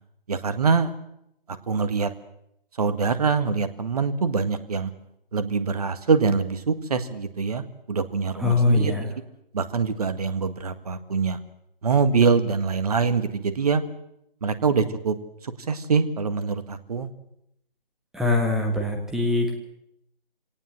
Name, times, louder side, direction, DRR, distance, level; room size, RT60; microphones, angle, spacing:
voice 1, 0.3-0.9 1.7-2.1 2.8-4.9 5.3-7.6 7.9-8.9 9.5-11.4 11.8-13.8 14.4-15.2 15.4-17.1, right 5 dB, 40° right, 10 dB, 1.8 m, -24 dB
voice 2, 8.4-9.1 18.1-19.5, left 3 dB, ahead, 2 dB, 1.8 m, -22 dB
24.5 x 18.0 x 7.6 m, 0.77 s
figure-of-eight pair, 150°, 29 cm